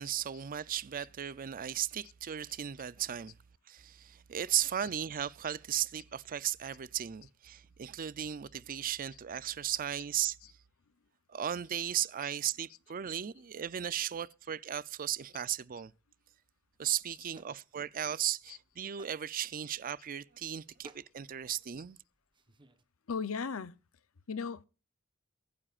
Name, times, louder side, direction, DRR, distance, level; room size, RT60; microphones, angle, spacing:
voice 1, 0.0-3.3 3.7-10.4 11.3-15.9 16.8-22.0, right 10 dB, 40° right, 0.5 m, -36 dB
sound 1, 16.7-22.8, right 2 dB, 25° right, 1.1 m, -61 dB
voice 2, 23.1-23.8 24.3-24.6, left 5 dB, 70° left, 0.7 m, -36 dB
23.0 x 9.8 x 2.5 m
head